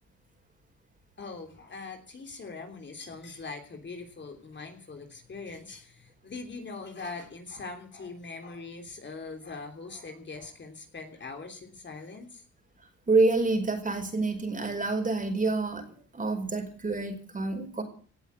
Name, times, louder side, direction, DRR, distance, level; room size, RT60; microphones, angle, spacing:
voice 1, 1.2-12.4, left 4 dB, 35° left, 4 dB, 3.2 m, -42 dB
voice 2, 13.1-15.8 16.1-17.8, right 3 dB, 25° right, 5 dB, 5.1 m, -27 dB
18.0 x 7.3 x 9.7 m, 0.43 s
cardioid pair, 90°, 30 cm